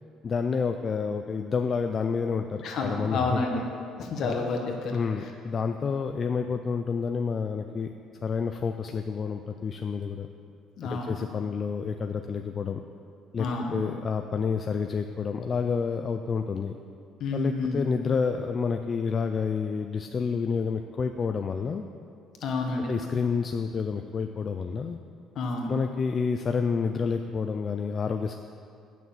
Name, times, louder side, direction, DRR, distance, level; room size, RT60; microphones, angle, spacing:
voice 1, 0.2-3.4 4.2-4.4 4.7-7.9 8.2-10.3 10.8-12.8 13.3-16.7 17.3-21.9 22.9-25.0 25.7-28.3, left 5 dB, 30° left, 6 dB, 0.3 m, -29 dB
voice 2, 2.6-3.6 4.0-4.9 10.8-11.2 13.4-13.7 17.2-17.8 22.4-22.9 25.4-25.7, left 3 dB, 50° left, 2 dB, 1.3 m, -29 dB
9.4 x 6.1 x 7.2 m, 2.4 s
cardioid pair, 160°, 0 cm